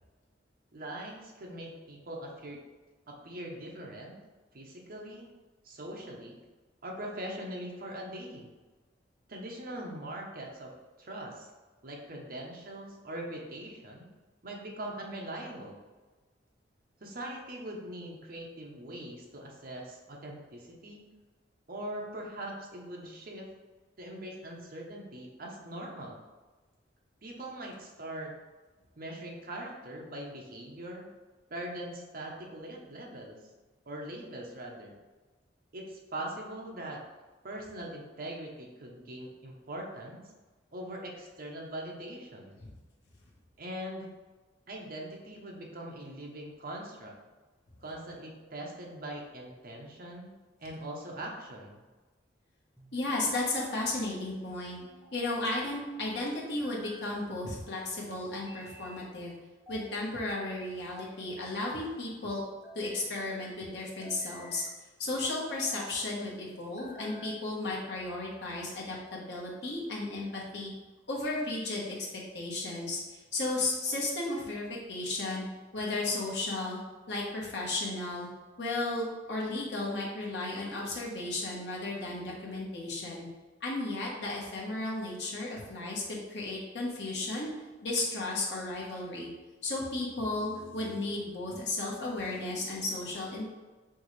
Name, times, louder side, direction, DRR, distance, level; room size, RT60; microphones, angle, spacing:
voice 1, 0.7-2.6 3.1-4.1 4.5-5.3 5.6-6.4 6.8-8.5 9.3-10.7 11.0-11.5 11.8-14.1 14.4-15.8 17.0-21.0 21.7-23.5 24.0-26.2 27.2-28.3 29.0-31.1 31.5-33.4 33.9-35.0 35.7-37.0 37.4-40.2 40.7-42.5 43.6-44.1 44.7-47.1 47.8-50.3 50.6-51.8, right 1 dB, 50° right, -1 dB, 0.8 m, -41 dB
sound 1, 52.8-53.4 54.8-55.6 56.4-57.2 58.3-59.1 59.7-60.3 60.9-61.8 62.4-63.1 63.8-64.8 65.3-65.8 66.6-67.4, equal, 15° right, 0.7 m, -52 dB
voice 2, 52.9-54.8 55.1-59.3 59.7-62.4 62.7-64.6 65.0-70.7 71.1-75.4 75.7-76.8 77.1-78.3 78.6-83.3 83.6-87.5 87.8-89.3 89.6-93.5, left 2 dB, 60° left, -4 dB, 1.1 m, -34 dB
4.6 x 3.1 x 3.1 m, 1.2 s
head